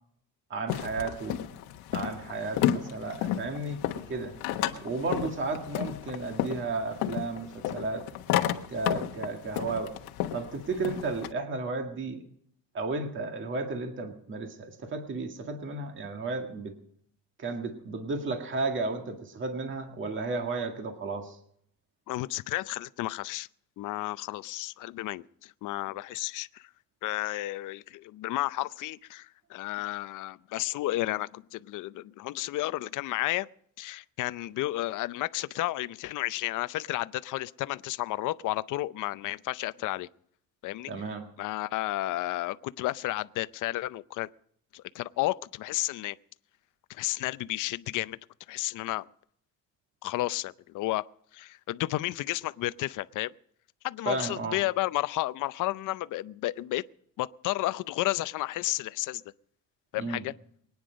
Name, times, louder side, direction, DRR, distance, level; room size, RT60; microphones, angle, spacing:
voice 1, 0.5-1.4 1.9-3.8 4.1-4.3 4.8-8.1 8.7-9.9 10.3-12.2 12.7-16.7 17.4-21.4 40.9-41.3 54.1-54.6 60.0-60.2, right 3 dB, 35° right, 1.9 m, -33 dB
sound 1, 0.7-11.3, left 12 dB, 90° left, 1.3 m, -32 dB
voice 2, 22.1-23.5 23.8-26.7 27.0-33.5 33.8-40.1 40.6-40.9 41.4-44.3 44.7-46.2 46.9-48.2 48.5-49.0 50.0-51.0 51.3-53.3 53.8-56.8 57.2-59.2 59.9-60.3, left 17 dB, 60° left, 0.6 m, -32 dB
23.5 x 9.7 x 5.2 m
cardioid pair, 130°, 35 cm